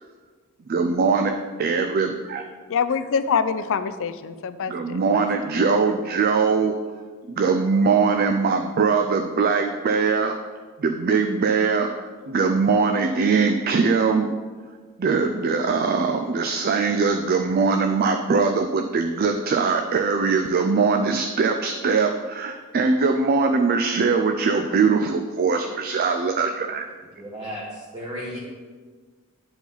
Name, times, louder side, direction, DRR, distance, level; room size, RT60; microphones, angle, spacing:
voice 1, 0.7-1.3 1.6-2.5 4.7-6.7 7.3-10.4 10.8-14.3 15.0-26.9, right 4 dB, 45° right, 5 dB, 0.4 m, -21 dB
voice 2, 2.7-5.2, left 6 dB, 65° left, 12 dB, 0.4 m, -25 dB
voice 3, 27.1-28.4, equal, 20° right, -5 dB, 1.1 m, -34 dB
9.6 x 4.8 x 4.0 m, 1.5 s
head